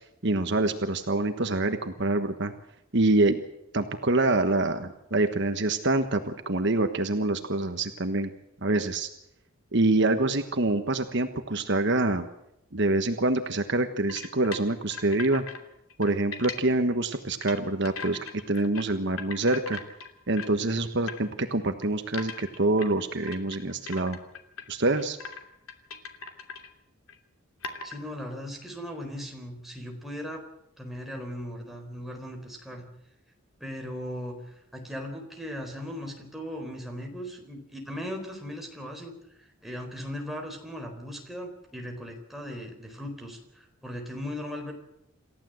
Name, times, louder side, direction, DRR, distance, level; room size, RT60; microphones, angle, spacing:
voice 1, 0.2-2.5 2.9-3.4 3.7-8.3 8.6-9.1 9.7-12.3 12.7-15.4 16.0-19.8 20.3-24.2 24.7-25.2, right 2 dB, 55° right, 7 dB, 1.3 m, -26 dB
sound 1, 14.1-15.6 15.9-16.6 17.1-17.6 17.8-18.8 19.1-20.6 21.1-21.2 21.8-24.7 24.9-25.4 25.7-26.7 27.1-27.2 27.6-28.0, left 5 dB, 80° left, 2.8 m, -39 dB
voice 2, 27.8-30.4 30.8-32.8 33.6-39.1 39.4-44.7, equal, ahead, 1 dB, 4.2 m, -38 dB
28.0 x 14.5 x 7.8 m, 0.81 s
head